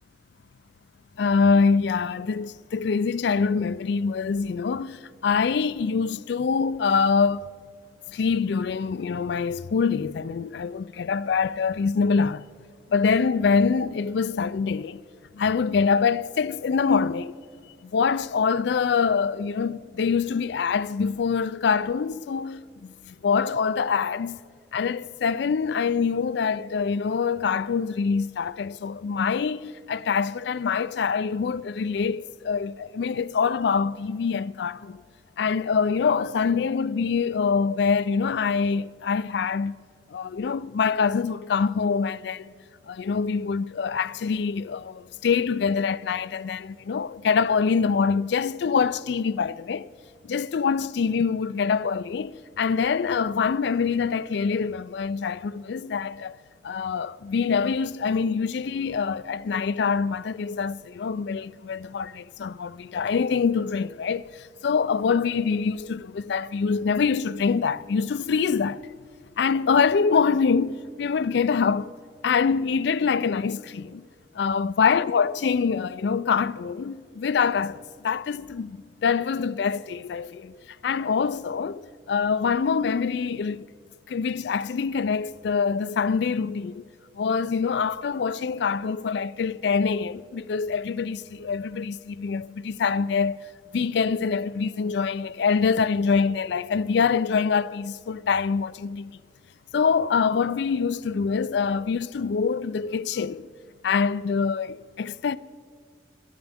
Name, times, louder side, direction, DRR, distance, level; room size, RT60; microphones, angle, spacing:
voice 1, 1.2-7.5 8.1-12.5 12.9-15.0 15.3-17.3 17.8-24.4 24.7-35.0 35.4-39.7 40.1-42.5 42.9-49.9 50.2-56.4 56.6-68.8 69.4-71.9 72.2-74.0 74.3-80.6 80.8-83.7 84.1-86.9 87.2-93.4 93.7-99.1 99.7-103.5 103.8-105.4, left 5 dB, 60° left, 0.3 m, -25 dB
22.0 x 12.0 x 3.5 m
head